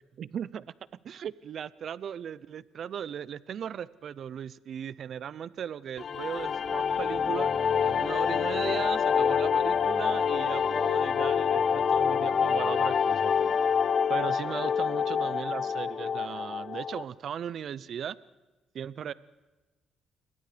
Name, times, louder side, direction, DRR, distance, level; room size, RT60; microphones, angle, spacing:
voice 1, 0.2-0.7 0.9-7.5 7.8-13.3 14.1-18.2 18.7-19.1, right 8 dB, 60° right, 19 dB, 0.7 m, -37 dB
sound 1, 6.0-17.0, left 7 dB, 55° left, 0.7 m, -27 dB
sound 2, 6.4-14.2, left 3 dB, 25° left, 1.5 m, -48 dB
28.5 x 22.0 x 5.1 m, 1.2 s
cardioid pair, 90°, 0 cm